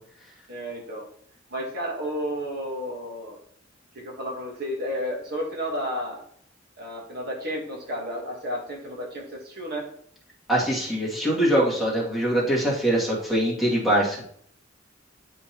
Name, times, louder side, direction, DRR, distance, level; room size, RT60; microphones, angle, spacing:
voice 1, 0.5-1.1 1.5-3.4 3.9-6.2 6.8-9.9, equal, 55° right, -1 dB, 1.4 m, -32 dB
voice 2, 10.5-14.2, right 1 dB, ahead, -6 dB, 1.9 m, -23 dB
9.8 x 3.8 x 2.9 m, 0.63 s
head